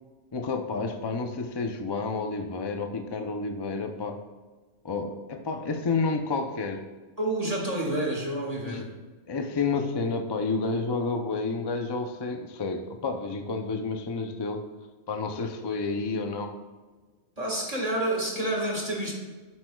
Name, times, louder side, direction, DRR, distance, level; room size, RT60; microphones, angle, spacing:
voice 1, 0.3-4.2 4.8-6.8 8.6-8.8 9.3-14.6 15.1-16.5, left 4 dB, 40° left, 5 dB, 0.4 m, -30 dB
voice 2, 7.2-8.9 17.4-19.1, right 1 dB, 30° right, -2 dB, 1.6 m, -29 dB
12.0 x 7.6 x 2.3 m, 1.3 s
omnidirectional pair, 1.3 m